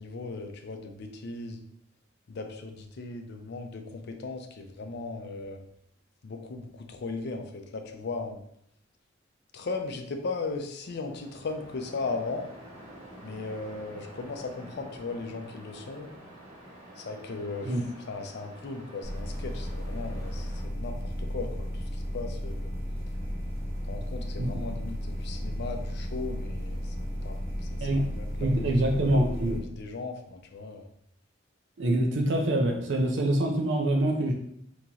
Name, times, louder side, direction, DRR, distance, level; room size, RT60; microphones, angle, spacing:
voice 1, 0.0-1.6 2.3-5.6 6.2-8.4 9.5-12.5 13.2-16.1 17.0-22.7 23.8-27.4 27.7-27.9 28.2-28.7 29.1-30.9, left 3 dB, 55° left, 5 dB, 0.5 m, -37 dB
Waves surf, 10.8-20.6, right 1 dB, 30° right, 1.3 m, -48 dB
sound 1, 19.0-29.6, equal, 15° right, 1.4 m, -34 dB
voice 2, 28.4-29.6 31.8-34.3, right 1 dB, 65° right, 1 dB, 0.5 m, -25 dB
3.7 x 2.9 x 2.8 m, 0.71 s
head